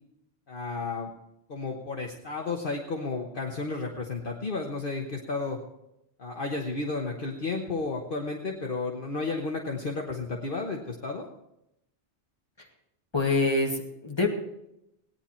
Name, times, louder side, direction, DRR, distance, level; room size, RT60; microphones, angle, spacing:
voice 1, 0.5-1.1 1.5-5.6 6.2-11.3, left 3 dB, 50° left, 1 dB, 1.3 m, -32 dB
voice 2, 13.1-14.3, left 3 dB, 25° left, 0 dB, 2.1 m, -25 dB
17.5 x 9.9 x 4.4 m, 0.83 s
omnidirectional pair, 1.2 m